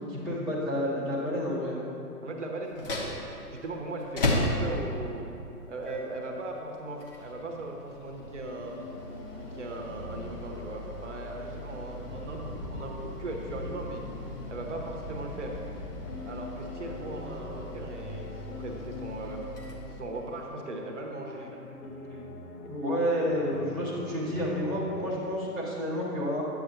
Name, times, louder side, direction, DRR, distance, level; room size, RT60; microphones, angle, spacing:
voice 1, 0.1-1.8 22.0-22.2 22.7-26.4, equal, ahead, -15 dB, 0.9 m, -30 dB
voice 2, 2.2-3.0 3.5-5.3 5.7-8.7 9.3-14.0 14.5-15.6 16.2-19.4 19.9-21.5, right 2 dB, 50° right, 1 dB, 1.0 m, -38 dB
sound 1, 2.6-20.4, left 1 dB, 35° left, 1.0 m, -37 dB
sound 2, 8.2-25.1, left 3 dB, 70° left, 1.0 m, -44 dB
sound 3, 9.1-17.6, left 1 dB, 90° left, 1.3 m, -45 dB
9.8 x 8.1 x 2.6 m, 2.7 s
figure-of-eight pair, 130°, 47 cm